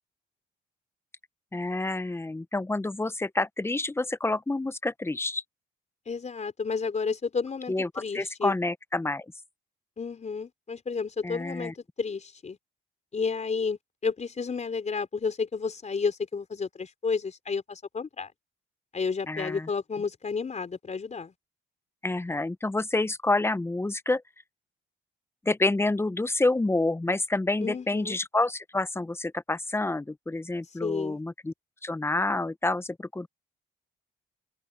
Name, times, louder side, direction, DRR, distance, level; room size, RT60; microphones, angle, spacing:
voice 1, 1.5-5.4 7.7-9.3 11.2-11.7 19.3-19.7 22.0-24.2 25.4-31.5 31.8-33.3, left 2 dB, 10° left, 0.9 m, -28 dB
voice 2, 6.1-8.5 10.0-12.6 13.1-18.3 18.9-21.3 27.6-28.2 30.8-31.2, left 5 dB, 35° left, 4.4 m, -31 dB
open air
cardioid pair, 90°, 20 cm